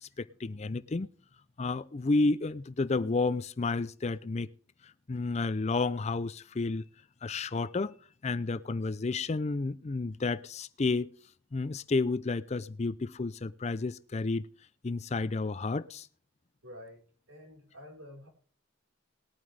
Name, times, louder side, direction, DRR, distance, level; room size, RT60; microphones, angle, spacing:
voice 1, 0.0-1.1 1.6-4.5 5.1-6.8 7.2-7.9 8.2-11.1 11.5-14.5 14.8-16.1, left 3 dB, 30° left, 0.4 m, -31 dB
voice 2, 16.6-18.3, left 1 dB, 90° right, 4.3 m, -49 dB
20.0 x 8.9 x 3.3 m
head